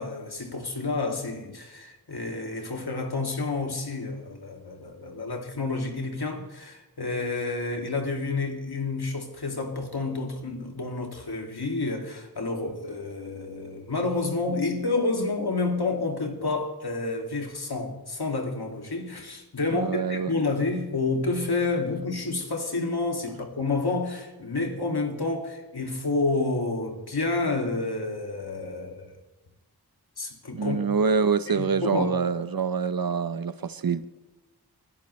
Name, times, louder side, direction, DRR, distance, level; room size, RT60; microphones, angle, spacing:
voice 1, 0.0-29.1 30.2-30.9 31.5-32.1, left 3 dB, 75° left, 2.4 m, -29 dB
voice 2, 19.7-20.3 30.5-34.1, right 5 dB, 65° right, 0.8 m, -26 dB
29.0 x 11.0 x 3.2 m
wide cardioid pair, 55°, 39 cm